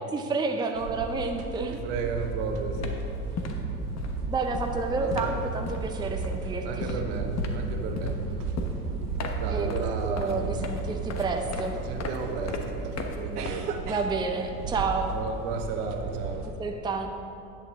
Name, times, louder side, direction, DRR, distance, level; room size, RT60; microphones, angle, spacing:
voice 1, 0.0-1.8 3.3-3.4 4.3-7.0 9.5-9.8 10.0-11.8 13.8-15.2 16.4-17.1, right 4 dB, 10° right, 4 dB, 0.6 m, -30 dB
sound 1, 0.7-16.5, right 4 dB, 80° right, 0.8 m, -34 dB
voice 2, 1.7-3.0 5.0-5.3 6.6-8.2 9.4-10.6 11.8-13.7 15.1-16.5, right 4 dB, 60° right, 4 dB, 1.1 m, -34 dB
sound 2, 2.2-2.4 2.6-14.1, left 3 dB, 35° left, 1.1 m, -37 dB
9.9 x 8.2 x 3.7 m, 2.7 s
figure-of-eight pair, 65°, 46 cm